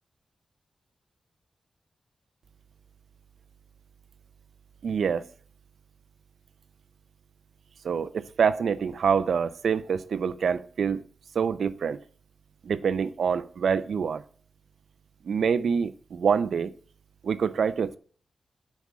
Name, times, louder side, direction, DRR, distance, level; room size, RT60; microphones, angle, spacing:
voice 1, 4.8-5.3 7.8-11.0 11.3-12.0 12.6-14.2 15.2-16.7 17.2-18.0, right 6 dB, 85° right, 0.6 m, -26 dB
8.3 x 5.4 x 7.3 m
wide cardioid pair, 170°, 0 cm